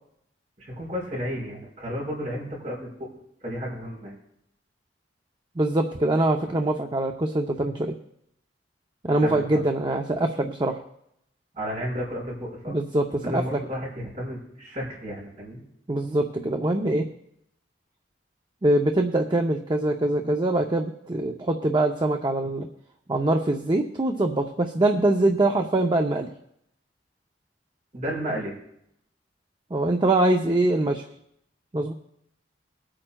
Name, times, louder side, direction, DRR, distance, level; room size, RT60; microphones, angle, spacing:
voice 1, 0.6-3.1 3.4-4.2 9.2-9.6 11.6-12.8 13.2-15.6 27.9-28.6, equal, 45° right, -5 dB, 5.5 m, -32 dB
voice 2, 5.6-7.9 9.0-10.8 12.7-13.4 15.9-17.1 18.6-22.7 23.1-26.3 29.7-31.0 31.7-31.9, right 2 dB, 25° right, 3 dB, 0.6 m, -23 dB
23.5 x 8.8 x 2.3 m, 0.76 s
head